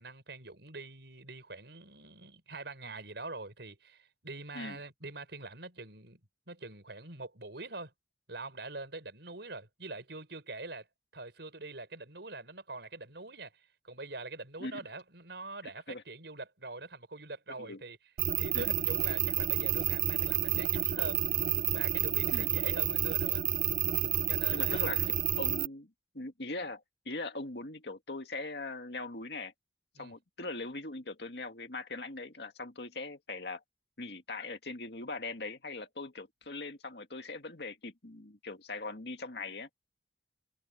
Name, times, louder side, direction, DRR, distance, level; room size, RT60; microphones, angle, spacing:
voice 1, 0.0-6.2 6.5-7.9 8.3-10.9 11.1-18.0 18.3-21.2 21.7-23.5 24.3-25.0 30.0-30.1, right 3 dB, 70° right, 5.6 m, -44 dB
sound 1, 18.2-25.7, right 12 dB, 50° right, 0.4 m, -30 dB
voice 2, 24.5-25.1 25.4-29.5 30.0-33.6 34.0-39.7, left 3 dB, 65° left, 2.2 m, -41 dB
head